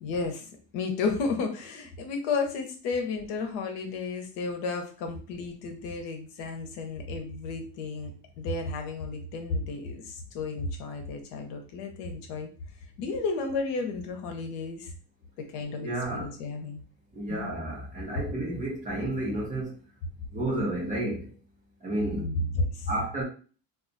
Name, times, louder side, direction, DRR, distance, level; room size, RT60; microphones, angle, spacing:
voice 1, 0.0-8.1 8.4-12.5 13.0-14.9 15.5-16.8 17.3-17.5 22.2-22.9, left 3 dB, 70° left, 5 dB, 0.8 m, -32 dB
voice 2, 15.8-16.3 17.2-19.7 20.3-21.2 21.8-22.2 22.9-23.2, right 1 dB, 20° right, -3 dB, 0.8 m, -31 dB
2.4 x 2.3 x 3.9 m, 0.38 s
cardioid pair, 175°, 42 cm